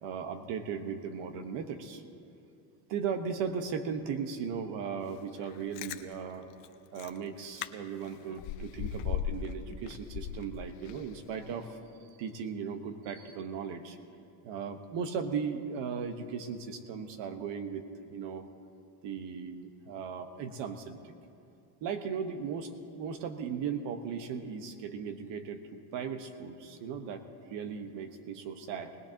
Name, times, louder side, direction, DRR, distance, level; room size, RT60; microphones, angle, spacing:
voice 1, 0.0-2.0 2.9-6.5 6.9-14.0 14.4-17.8 18.1-18.5 19.0-21.1 21.8-27.2 27.5-28.9, right 6 dB, 65° right, 7 dB, 1.4 m, -37 dB
Chewing mastication, 5.5-6.0 6.6-6.7 7.0-7.2 7.6-7.7 8.0-9.5 9.9-11.1 11.5-11.6, left 11 dB, 65° left, 0.8 m, -36 dB
19.5 x 19.5 x 3.0 m, 2.6 s
supercardioid pair, 90°, 46 cm